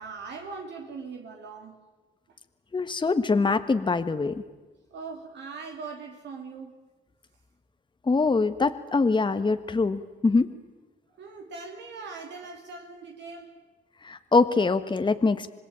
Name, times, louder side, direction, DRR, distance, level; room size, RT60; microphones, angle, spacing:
voice 1, 0.0-1.8 4.9-6.7 11.2-13.6, right 4 dB, 65° right, 2.9 m, -40 dB
voice 2, 2.7-4.3 8.1-10.5 14.0-15.5, left 4 dB, 25° left, 1.4 m, -23 dB
26.0 x 20.0 x 8.8 m
supercardioid pair, 75°, 19 cm